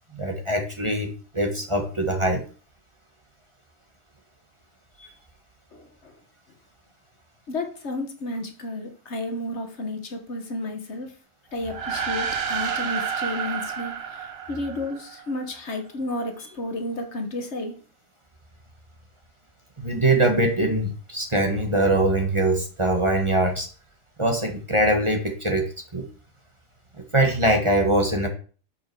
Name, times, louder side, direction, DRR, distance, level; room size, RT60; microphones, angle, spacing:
voice 1, 0.1-2.4 19.8-23.7 24.2-26.0 27.0-28.3, right 1 dB, 25° right, 1.2 m, -22 dB
voice 2, 7.5-11.1 11.5-13.9 14.5-17.7, left 2 dB, 60° left, 1.6 m, -31 dB
sound 1, 11.6-15.3, right 7 dB, 55° right, 1.0 m, -30 dB
7.2 x 5.6 x 4.7 m
omnidirectional pair, 1.3 m